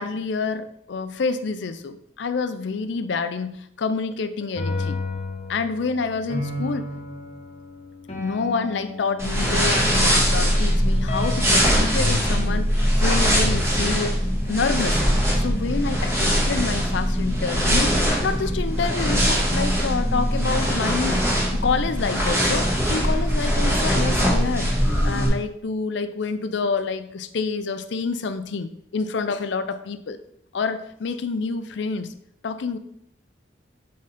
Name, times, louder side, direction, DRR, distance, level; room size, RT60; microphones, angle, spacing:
voice 1, 0.0-5.0 5.5-6.9 8.2-14.2 14.5-15.0 15.4-24.7 25.0-30.2 30.5-32.1 32.4-32.8, left 4 dB, 65° left, 11 dB, 0.4 m, -28 dB
sound 1, 4.4-10.0 11.1-11.6 12.0-12.1, left 3 dB, 30° left, 1.0 m, -32 dB
sound 2, 9.2-25.3, equal, 15° right, 1.5 m, -21 dB
8.4 x 3.8 x 3.7 m, 0.72 s
head